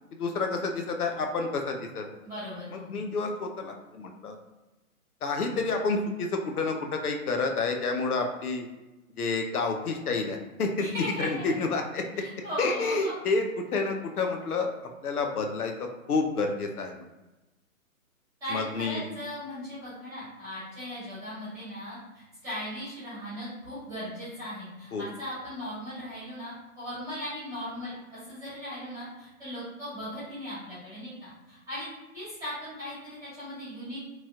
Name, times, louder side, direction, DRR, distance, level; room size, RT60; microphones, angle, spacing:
voice 1, 0.1-2.0 2.7-4.4 5.2-8.7 9.2-10.9 11.2-12.0 12.6-14.7 15.0-17.0 18.5-19.0 24.9-25.0, left 3 dB, 85° left, 3 dB, 0.6 m, -29 dB
voice 2, 2.2-2.9 10.8-11.3 12.2-13.1 18.4-31.9 32.1-34.1, equal, 10° right, -11 dB, 1.3 m, -38 dB
3.0 x 2.9 x 2.4 m, 1.0 s
hypercardioid pair, 150°, 43 cm